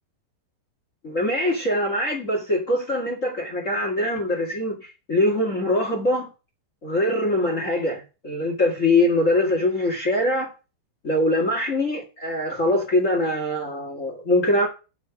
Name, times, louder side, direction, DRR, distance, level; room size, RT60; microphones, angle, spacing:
voice 1, 1.0-6.3 6.8-10.5 11.0-14.7, left 1 dB, 35° left, 1.2 m, -23 dB
7.1 x 6.0 x 7.1 m
omnidirectional pair, 4.7 m